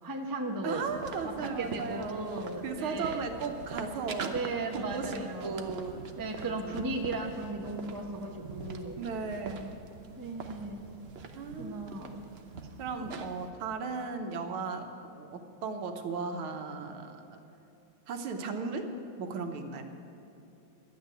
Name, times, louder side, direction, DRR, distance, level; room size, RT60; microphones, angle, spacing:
voice 1, 0.0-0.8 1.4-3.5 4.3-5.7 6.2-9.0 10.2-10.8 11.6-12.2 13.0-13.1, right 2 dB, 15° right, 1 dB, 0.7 m, -36 dB
voice 2, 0.6-2.2 2.6-4.4 4.7-6.0 6.4-6.9 9.0-9.8 11.3-11.9 12.8-14.9 15.2-17.4 18.1-18.9 19.2-19.8, right 4 dB, 85° right, 5 dB, 1.9 m, -36 dB
sound 1, 0.7-13.5, right 4 dB, 70° right, 0.5 m, -44 dB
11.5 x 9.4 x 8.9 m, 2.8 s
omnidirectional pair, 2.2 m